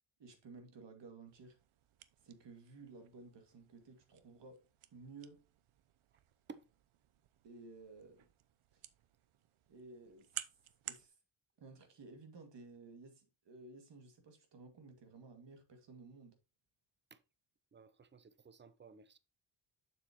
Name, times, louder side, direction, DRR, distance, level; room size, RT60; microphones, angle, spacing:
voice 1, 0.2-1.6 2.2-4.6 4.9-5.4 7.4-8.3 8.7-8.8 9.7-10.3 10.9-11.2 11.6-16.3, right 3 dB, 60° right, 2.3 m, -55 dB
sound 1, 1.3-11.1, right 13 dB, 85° right, 0.8 m, -54 dB
voice 2, 17.7-19.2, right 5 dB, 25° right, 0.7 m, -55 dB
7.1 x 7.0 x 2.9 m
cardioid pair, 125°, 48 cm